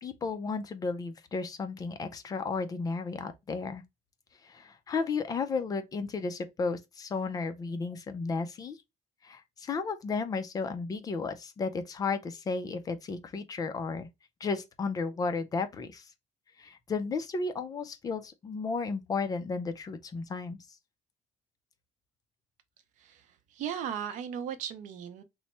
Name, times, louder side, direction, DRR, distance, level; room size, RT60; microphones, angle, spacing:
voice 1, 0.0-3.8 4.4-8.8 9.2-14.1 14.4-16.0 16.6-20.6, left 4 dB, 30° left, 0.4 m, -33 dB
voice 2, 23.0-25.2, right 8 dB, 70° right, 0.6 m, -37 dB
3.0 x 2.1 x 4.1 m
cardioid pair, 150°, 13 cm